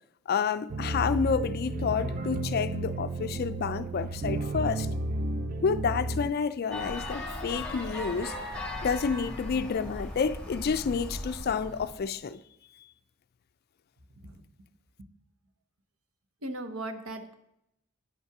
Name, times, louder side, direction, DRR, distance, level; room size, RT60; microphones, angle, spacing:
voice 1, 0.3-4.9 5.6-8.4 8.8-12.4, left 5 dB, 45° left, 0.3 m, -29 dB
sound 1, 0.7-6.3, right 2 dB, 40° right, 0.4 m, -32 dB
sound 2, 6.7-12.0, left 1 dB, 5° left, 1.3 m, -38 dB
voice 2, 16.4-17.3, right 1 dB, 75° right, 0.9 m, -38 dB
8.1 x 5.6 x 5.9 m
head